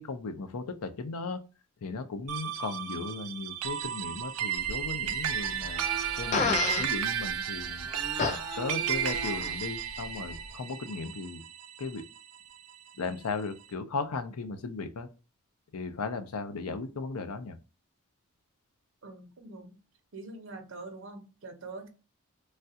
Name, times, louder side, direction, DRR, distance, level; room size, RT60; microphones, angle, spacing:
voice 1, 0.0-1.4 1.8-5.8 6.2-6.4 6.8-7.9 8.2-11.4 11.8-12.0 13.0-15.1 15.7-17.6, left 4 dB, 90° left, 9 dB, 0.5 m, -36 dB
sound 1, 2.3-12.9, right 9 dB, 80° right, 0.4 m, -34 dB
sound 2, 4.6-10.6, right 1 dB, 50° left, 0.9 m, -43 dB
Fart, 6.3-6.9 8.2-8.4, left 4 dB, 30° left, 0.4 m, -26 dB
voice 2, 19.0-19.8 20.1-21.9, right 3 dB, 60° right, 6 dB, 0.7 m, -44 dB
3.2 x 2.3 x 2.7 m, 0.32 s
head